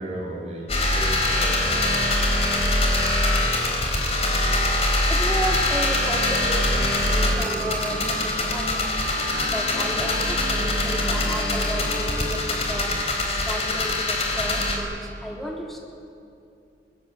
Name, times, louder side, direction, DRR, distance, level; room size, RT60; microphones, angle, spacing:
voice 1, 0.0-2.0, right 1 dB, 40° right, -1 dB, 6.4 m, -34 dB
sound 1, 0.7-14.8, left 1 dB, 35° left, 4.0 m, -23 dB
voice 2, 5.1-6.8 7.1-8.9 9.5-12.9 13.4-14.9 15.2-15.8, equal, ahead, -2 dB, 3.1 m, -32 dB
Wind instrument woodwind instrument, 5.5-10.0, right 5 dB, 80° right, 6.0 m, -37 dB
sound 2, 6.6-12.4, left 1 dB, 80° left, 4.2 m, -36 dB
26.0 x 19.5 x 7.6 m, 2.5 s
head